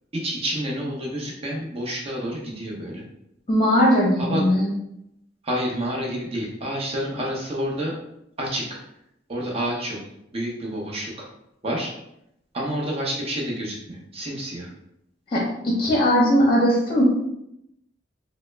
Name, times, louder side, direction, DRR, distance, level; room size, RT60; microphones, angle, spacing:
voice 1, 0.1-3.0 4.2-4.4 5.4-8.0 8.4-8.8 9.3-10.0 10.3-11.3 11.6-11.9 12.5-14.7, equal, 35° right, -2 dB, 0.8 m, -29 dB
voice 2, 3.5-4.7 15.3-17.0, equal, 30° left, -3 dB, 0.7 m, -19 dB
3.4 x 2.1 x 3.3 m, 0.79 s
head